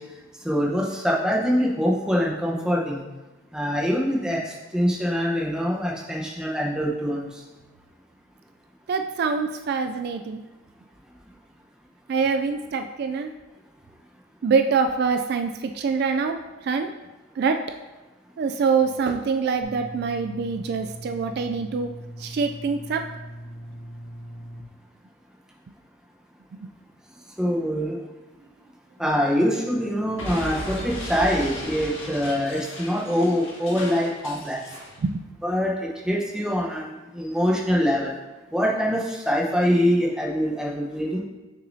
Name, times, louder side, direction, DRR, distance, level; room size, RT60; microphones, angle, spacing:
voice 1, 0.4-3.0 3.5-7.3 27.4-28.0 29.0-34.6 35.4-38.1 38.5-41.2, equal, 5° right, -3 dB, 0.9 m, -24 dB
voice 2, 8.9-10.4 12.1-13.3 14.4-16.9 17.4-17.6 18.4-21.9 22.2-23.0 35.0-35.2, right 5 dB, 55° right, 6 dB, 0.3 m, -25 dB
sound 1, 19.6-24.6, equal, 35° right, 1.0 m, -40 dB
Explosion, 30.2-35.0, left 1 dB, 75° left, 1.7 m, -35 dB
6.6 x 6.2 x 2.7 m, 1.1 s
head